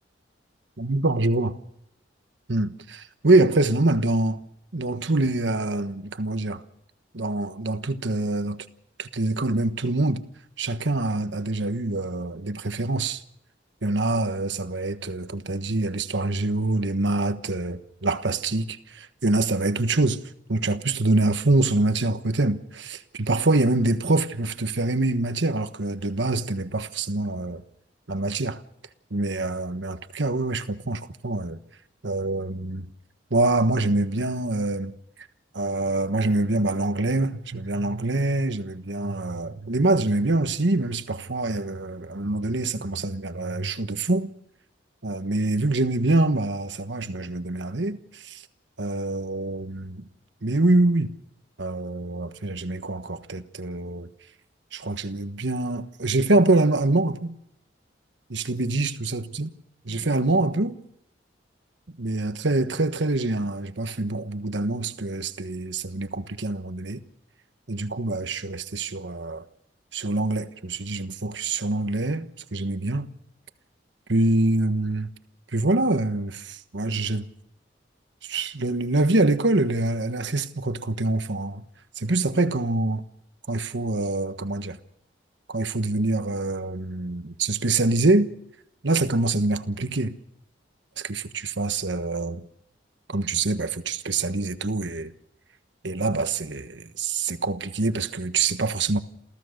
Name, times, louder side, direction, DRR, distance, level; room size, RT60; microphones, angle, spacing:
voice 1, 0.8-1.5 2.5-4.4 4.7-6.6 7.1-8.6 9.0-10.2 10.6-13.2 13.8-20.2 20.5-27.6 28.1-28.6 29.1-31.6 32.0-32.9 33.3-34.9 35.5-44.3 45.0-48.4 48.8-50.1 50.4-51.1 51.6-54.1 54.7-57.3 58.3-59.5 59.8-60.8 61.9-67.0 67.7-69.4 69.9-73.1 74.1-75.1 75.5-77.3 78.2-81.6 82.0-83.0 83.5-84.8 85.5-88.3 88.8-90.1 91.0-92.4 93.1-95.1 95.8-99.0, right 2 dB, 80° right, 1.3 m, -25 dB
28.5 x 15.5 x 6.6 m
head